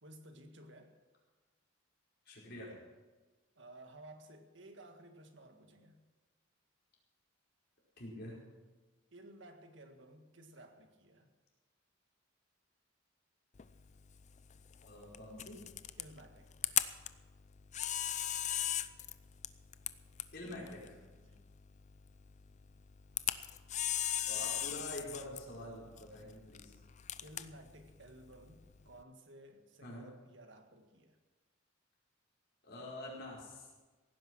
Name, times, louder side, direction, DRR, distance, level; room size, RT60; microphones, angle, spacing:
voice 1, 0.0-0.9 3.5-6.0 9.1-11.3 16.0-16.8 21.2-21.4 27.2-31.2, right 1 dB, 60° right, 6 dB, 1.8 m, -56 dB
voice 2, 2.2-2.7 8.0-8.4 14.9-15.6 20.3-21.0 24.3-26.7 29.8-30.1 32.6-33.7, left 1 dB, 50° left, -4 dB, 4.7 m, -46 dB
Camera, 13.6-29.0, left 11 dB, 35° left, 0.5 m, -40 dB
17.0 x 10.0 x 6.2 m, 1.3 s
head